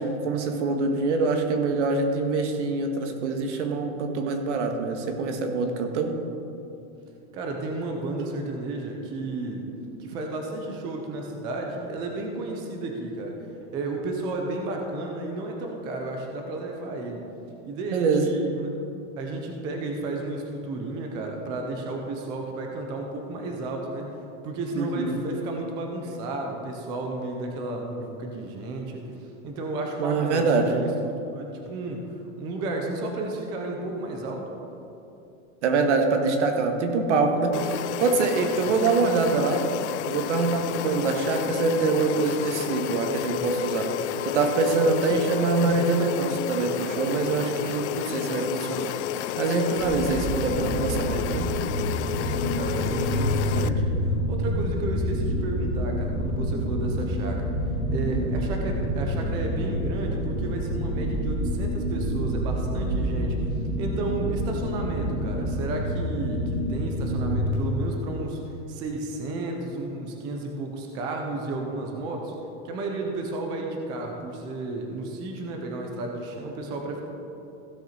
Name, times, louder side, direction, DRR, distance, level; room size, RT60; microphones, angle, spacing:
voice 1, 0.0-6.1 17.9-18.3 24.8-25.2 30.0-30.8 35.6-39.6 40.1-48.9 49.4-51.5 58.1-58.3, right 3 dB, 75° right, 4 dB, 1.5 m, -25 dB
voice 2, 7.3-9.7 10.0-17.2 17.6-18.7 19.2-24.1 24.4-29.1 29.4-34.5 52.2-57.5 57.9-63.5 63.8-68.4 68.7-72.3 72.6-77.0, right 2 dB, 15° right, 2 dB, 0.4 m, -32 dB
sound 1, 37.5-53.7, left 13 dB, 70° left, 0.5 m, -31 dB
sound 2, 49.8-67.5, equal, 35° right, 2.3 m, -28 dB
15.5 x 6.4 x 4.3 m, 2.8 s
supercardioid pair, 175°, 36 cm